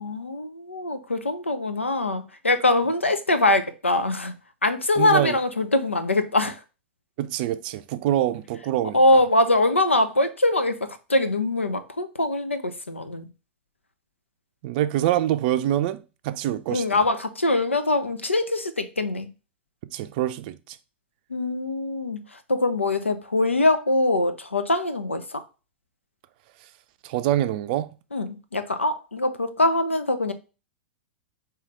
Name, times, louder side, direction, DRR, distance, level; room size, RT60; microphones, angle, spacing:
voice 1, 0.0-4.3 4.6-6.6 8.9-10.8 11.1-13.2 16.7-19.3 21.3-22.2 22.5-25.4 28.1-30.3, left 2 dB, 90° left, 0.6 m, -23 dB
voice 2, 5.0-5.4 7.2-9.2 14.6-17.0 19.9-20.8 27.0-27.9, right 13 dB, 50° right, 0.4 m, -25 dB
4.8 x 3.0 x 3.2 m
figure-of-eight pair, 100°, 6 cm